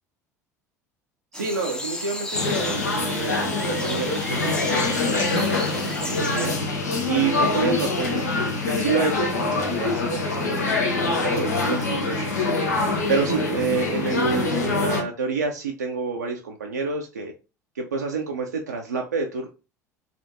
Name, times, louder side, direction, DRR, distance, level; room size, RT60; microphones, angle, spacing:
sound 1, 1.3-6.5, left 1 dB, 10° left, 0.5 m, -33 dB
voice 1, 1.3-6.6 7.0-12.6 13.1-17.3 17.8-19.5, right 4 dB, 80° right, 1 dB, 0.4 m, -29 dB
sound 2, 2.3-15.0, left 3 dB, 75° left, 0.6 m, -24 dB
3.3 x 2.4 x 2.7 m, 0.31 s
figure-of-eight pair, 65°, 9 cm